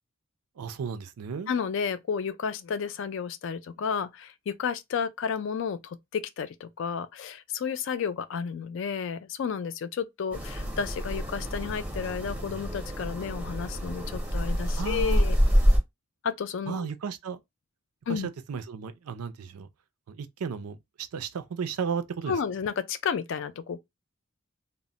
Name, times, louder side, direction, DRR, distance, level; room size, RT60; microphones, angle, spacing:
voice 1, 0.6-1.5 14.8-15.2 16.7-17.4 18.1-19.7 20.1-22.4, right 6 dB, 90° right, 0.4 m, -34 dB
voice 2, 1.5-15.4 16.2-16.9 18.1-18.3 22.3-23.8, left 6 dB, 55° left, 0.3 m, -32 dB
sound 1, 10.3-15.8, equal, 5° right, 0.5 m, -27 dB
2.1 x 2.0 x 3.7 m
head